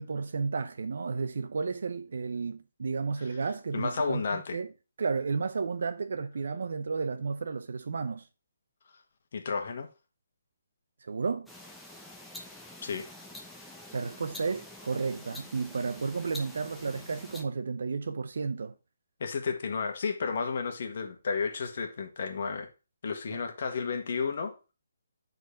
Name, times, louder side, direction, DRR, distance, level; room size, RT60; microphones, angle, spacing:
voice 1, 0.0-4.7 5.0-8.3 11.0-11.5 13.9-18.7 23.3-23.4, right 4 dB, 70° right, 0.6 m, -32 dB
voice 2, 3.7-4.6 9.3-9.9 12.8-13.1 19.2-22.7 23.0-24.5, left 5 dB, 55° left, 1.5 m, -32 dB
sound 1, 11.5-17.4, left 1 dB, ahead, 0.8 m, -47 dB
6.5 x 4.1 x 5.2 m
hypercardioid pair, 165°, 0 cm